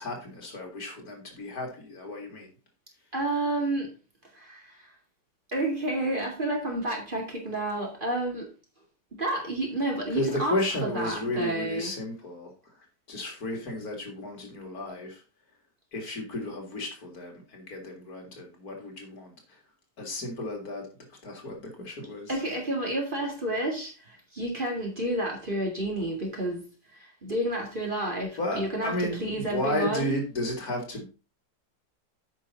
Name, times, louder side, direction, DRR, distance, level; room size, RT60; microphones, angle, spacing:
voice 1, 0.0-2.5 10.1-15.2 15.9-19.6 20.0-20.9 21.2-22.4 28.4-31.1, left 1 dB, 60° left, 2.5 m, -33 dB
voice 2, 3.1-3.9 4.3-4.9 5.5-8.5 9.1-11.9 22.3-26.6 26.9-30.2, right 1 dB, 30° right, 2.5 m, -30 dB
9.0 x 5.6 x 4.1 m
omnidirectional pair, 1.9 m